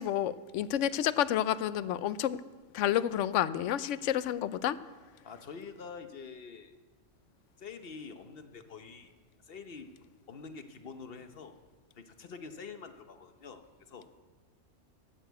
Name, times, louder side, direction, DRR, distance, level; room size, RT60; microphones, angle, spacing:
voice 1, 0.0-2.4 2.7-4.8, left 11 dB, 75° left, 15 dB, 0.9 m, -30 dB
voice 2, 5.2-6.7 7.6-9.1 9.4-9.9 10.3-11.6 12.0-14.0, left 5 dB, 50° left, 8 dB, 1.0 m, -46 dB
13.0 x 6.7 x 8.0 m, 1.4 s
omnidirectional pair, 1.3 m